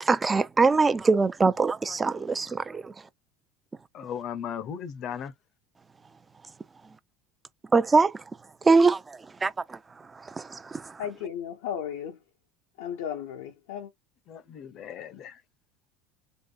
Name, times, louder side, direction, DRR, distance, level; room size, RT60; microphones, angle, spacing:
voice 1, 0.0-2.9 7.7-8.2 8.6-9.8 10.1-11.0, right 4 dB, 20° right, 0.6 m, -23 dB
voice 2, 3.9-5.3 14.3-15.4, left 8 dB, 50° left, 0.8 m, -37 dB
voice 3, 11.0-12.2 12.8-13.9, left 9 dB, 85° left, 1.0 m, -35 dB
3.9 x 3.2 x 3.9 m
supercardioid pair, 100°, 0 cm